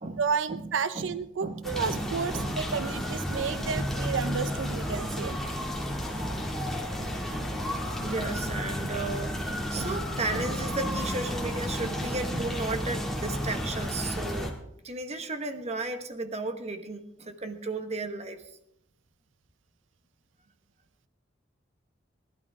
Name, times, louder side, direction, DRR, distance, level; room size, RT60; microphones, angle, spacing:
voice 1, 0.2-5.4, right 6 dB, 85° right, 14 dB, 0.5 m, -31 dB
voice 2, 1.4-2.1 2.3-2.6 7.0-14.5 14.8-18.4, right 3 dB, 35° right, 7 dB, 1.2 m, -34 dB
sound 1, 1.6-14.5, equal, ahead, 2.2 m, -32 dB
19.5 x 11.5 x 3.5 m, 0.78 s
head